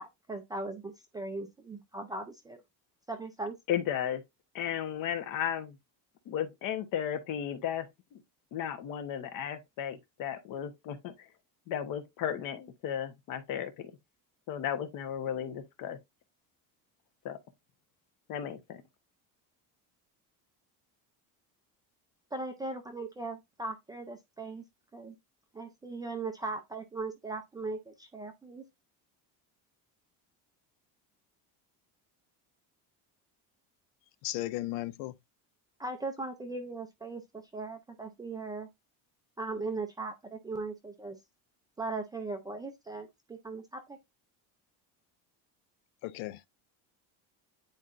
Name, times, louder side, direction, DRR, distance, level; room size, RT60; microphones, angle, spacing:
voice 1, 0.0-2.6 3.1-3.6 22.3-24.6 24.9-25.1 25.5-28.6 35.8-38.7 39.4-41.2 41.8-44.0, right 3 dB, 10° right, 0.4 m, -39 dB
voice 2, 3.7-4.2 4.5-5.7 6.3-7.9 8.1-8.2 8.5-11.1 11.7-13.7 14.5-16.0 17.2-17.4 18.3-18.8, left 9 dB, 50° left, 1.1 m, -34 dB
voice 3, 34.2-35.1 46.0-46.5, left 16 dB, 80° left, 0.5 m, -35 dB
9.3 x 4.0 x 2.5 m
cardioid pair, 175°, 41 cm